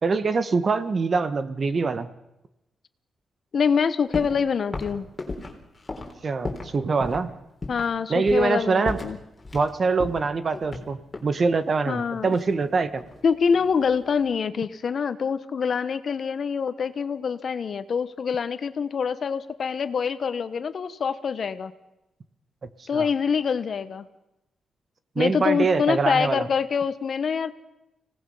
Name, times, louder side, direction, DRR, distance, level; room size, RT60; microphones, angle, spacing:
voice 1, 0.0-2.1 6.2-7.3 8.1-9.0 9.5-13.0 22.9-23.1 25.1-26.5, right 4 dB, 45° right, 12 dB, 1.4 m, -24 dB
voice 2, 3.5-5.1 7.7-9.2 11.9-12.4 13.2-21.7 22.9-24.1 25.2-27.5, left 6 dB, 55° left, 12 dB, 1.2 m, -25 dB
sound 1, 4.1-4.4 4.7-6.7 7.0-7.2 7.6-7.9 8.3-8.6 8.8-9.7 10.0-11.3 12.3-13.2 13.5-14.0, left 3 dB, 25° left, 4.0 m, -35 dB
25.5 x 18.5 x 5.6 m, 0.92 s
cardioid pair, 95°, 0 cm